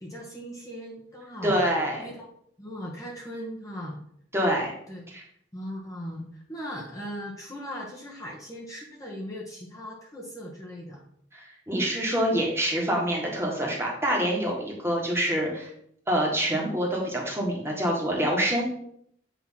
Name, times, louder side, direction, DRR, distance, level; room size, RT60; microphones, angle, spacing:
voice 1, 0.0-1.6 2.0-2.3 2.6-4.0 4.9-5.0 5.5-11.0, equal, 20° left, -4 dB, 1.1 m, -38 dB
voice 2, 1.4-2.1 4.3-4.7 5.1-5.2 11.3-15.7 16.1-18.6, equal, 15° right, -2 dB, 1.5 m, -26 dB
8.4 x 3.0 x 5.7 m, 0.68 s
head